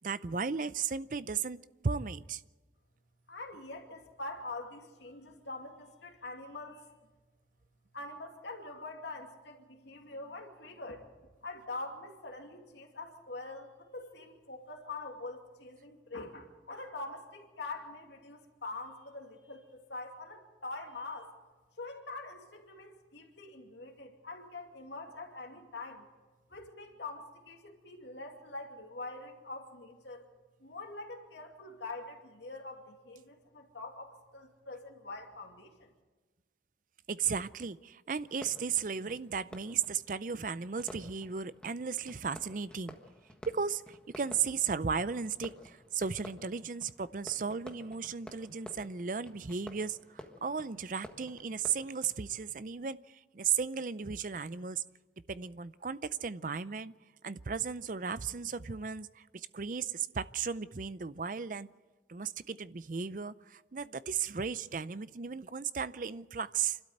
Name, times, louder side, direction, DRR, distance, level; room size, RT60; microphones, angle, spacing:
voice 1, 0.0-2.4 37.1-43.0 43.5-54.8 55.3-56.9 57.2-61.7 62.1-66.8, right 6 dB, 45° right, 15 dB, 0.5 m, -35 dB
voice 2, 3.3-6.9 7.9-11.1 11.4-21.3 21.8-26.1 26.5-30.2 30.6-35.9, left 2 dB, 85° left, 2 dB, 2.6 m, -44 dB
Fireworks, 38.3-52.5, left 1 dB, 5° left, 1.5 m, -52 dB
27.0 x 12.5 x 8.0 m, 1.3 s
head